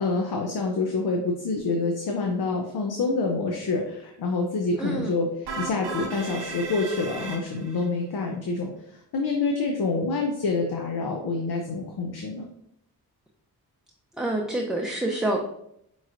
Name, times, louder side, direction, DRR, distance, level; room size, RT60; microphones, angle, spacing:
voice 1, 0.0-12.5, left 3 dB, 70° left, 2 dB, 0.7 m, -27 dB
voice 2, 4.8-5.1 14.2-15.4, right 1 dB, ahead, -1 dB, 0.6 m, -27 dB
sound 1, 5.5-7.9, right 3 dB, 90° right, 0.7 m, -35 dB
5.2 x 3.1 x 2.5 m, 0.75 s
cardioid pair, 45°, 39 cm